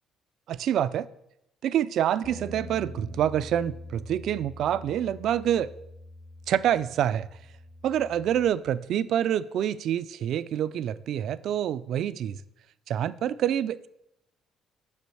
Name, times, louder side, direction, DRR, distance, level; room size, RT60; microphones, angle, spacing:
voice 1, 0.5-1.1 1.6-5.7 6.5-7.3 7.8-12.4 12.9-13.9, right 10 dB, 65° right, 0.3 m, -27 dB
Bass guitar, 2.2-8.5, left 1 dB, 75° left, 2.7 m, -44 dB
6.2 x 5.3 x 6.2 m
cardioid pair, 110°, 0 cm